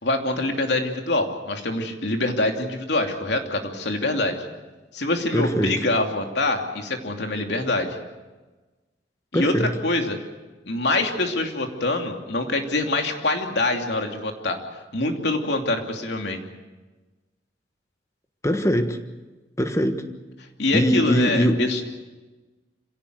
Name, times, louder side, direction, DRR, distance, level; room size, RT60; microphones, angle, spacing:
voice 1, 0.0-4.4 4.9-8.0 9.3-10.2 10.6-14.6 14.9-16.4 20.6-21.8, left 2 dB, 65° left, 3 dB, 2.9 m, -25 dB
voice 2, 5.3-5.8 9.3-9.7 18.4-19.0 19.6-20.1 20.7-21.6, equal, 15° left, 7 dB, 1.4 m, -22 dB
26.5 x 17.0 x 8.1 m, 1.2 s
head